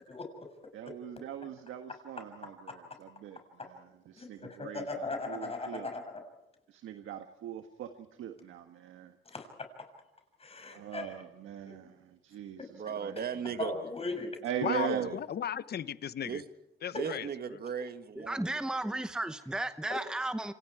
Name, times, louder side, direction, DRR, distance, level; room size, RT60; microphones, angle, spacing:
voice 1, 0.7-3.4 4.1-4.8 5.3-5.9 6.7-7.9 8.2-9.1 10.7-11.9 12.2-12.6 13.0-13.1 14.4-15.1, right 10 dB, 85° right, 6 dB, 1.6 m, -40 dB
voice 2, 4.2-6.0 9.3-9.5 10.4-11.2 11.6-11.9 13.6-14.3, left 3 dB, 30° left, 4 dB, 6.9 m, -38 dB
voice 3, 12.7-13.7 14.6-15.2 16.2-16.4 17.0-18.4, right 7 dB, 50° right, 10 dB, 1.6 m, -36 dB
voice 4, 14.6-16.4 16.8-17.3, left 9 dB, 55° left, 15 dB, 1.0 m, -35 dB
voice 5, 18.2-20.5, right 1 dB, 5° right, 10 dB, 1.0 m, -34 dB
28.5 x 26.0 x 4.8 m, 0.91 s
cardioid pair, 90°, 20 cm